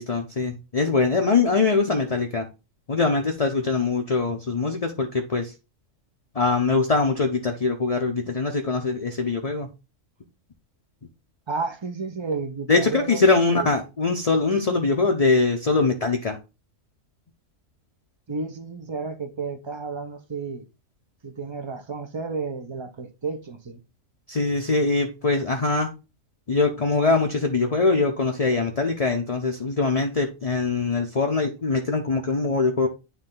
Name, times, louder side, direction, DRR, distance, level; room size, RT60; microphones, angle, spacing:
voice 1, 0.0-2.4 2.9-5.5 6.3-9.7 12.7-16.4 24.3-25.9 26.5-32.9, left 3 dB, 35° left, 0.7 m, -22 dB
voice 2, 11.5-13.7 18.3-20.6 21.2-23.8, right 4 dB, 30° right, 0.6 m, -32 dB
9.5 x 3.3 x 3.7 m
omnidirectional pair, 1.4 m